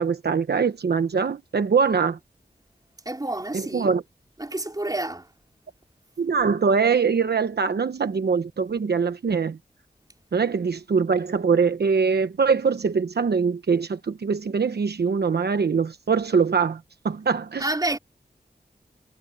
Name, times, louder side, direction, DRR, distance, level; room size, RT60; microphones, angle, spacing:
voice 1, 0.0-2.2 3.5-4.0 6.2-9.6 10.3-16.8 17.0-17.6, right 5 dB, 70° right, 1.0 m, -23 dB
voice 2, 3.1-3.9 4.4-5.3 17.6-18.0, right 2 dB, 20° right, 3.7 m, -28 dB
wide cardioid pair, 90°, 17 cm